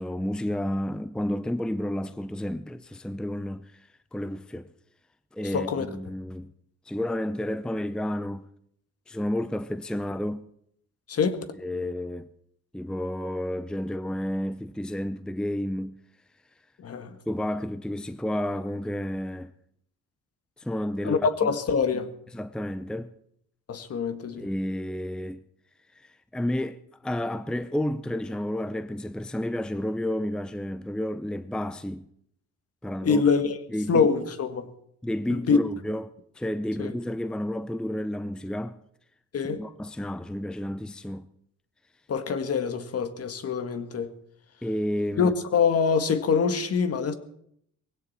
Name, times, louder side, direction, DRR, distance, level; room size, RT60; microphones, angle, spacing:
voice 1, 0.0-3.7 4.1-4.7 5.3-6.5 6.9-8.4 9.1-10.5 11.6-12.3 12.7-16.0 17.3-19.5 20.6-21.3 22.3-23.1 24.4-25.4 26.0-32.1 32.8-33.2 33.7-34.1 35.0-36.0 36.4-38.8 39.5-41.2 44.6-45.3, left 1 dB, 5° left, 0.6 m, -31 dB
voice 2, 5.4-6.0 11.1-11.5 16.8-17.2 21.0-22.1 23.7-24.5 33.0-33.6 33.9-34.7 35.3-35.6 36.8-36.9 39.3-39.6 42.1-44.1 45.2-47.1, left 5 dB, 55° left, 1.7 m, -25 dB
19.5 x 17.0 x 4.3 m
cardioid pair, 90°, 30 cm